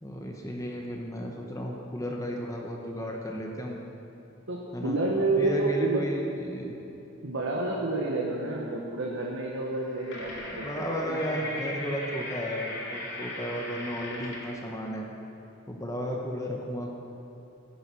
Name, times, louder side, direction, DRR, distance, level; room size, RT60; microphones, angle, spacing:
voice 1, 0.0-3.8 4.7-6.8 10.5-15.1 15.7-16.9, equal, 15° left, 0 dB, 1.1 m, -34 dB
voice 2, 4.5-6.0 7.2-11.5, right 2 dB, 75° right, -3 dB, 1.5 m, -29 dB
sound 1, 9.7-14.5, left 1 dB, 60° left, 2.8 m, -38 dB
15.0 x 9.4 x 6.2 m, 2.9 s
head